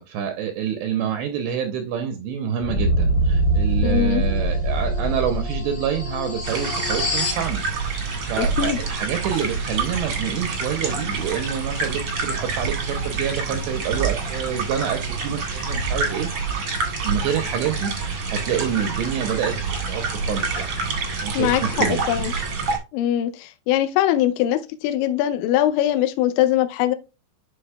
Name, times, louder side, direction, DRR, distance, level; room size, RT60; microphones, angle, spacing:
voice 1, 0.0-8.0 8.3-16.3 17.0-19.6 19.9-20.7 21.2-22.0, right 8 dB, 85° right, 2.5 m, -27 dB
sound 1, 2.6-7.5, right 1 dB, 30° left, 3.6 m, -23 dB
voice 2, 3.8-4.2 8.4-8.8 21.4-22.3 22.9-27.0, left 12 dB, 80° left, 2.8 m, -22 dB
sound 2, 6.4-22.8, right 4 dB, 55° right, 1.7 m, -27 dB
10.0 x 5.6 x 2.2 m
omnidirectional pair, 5.7 m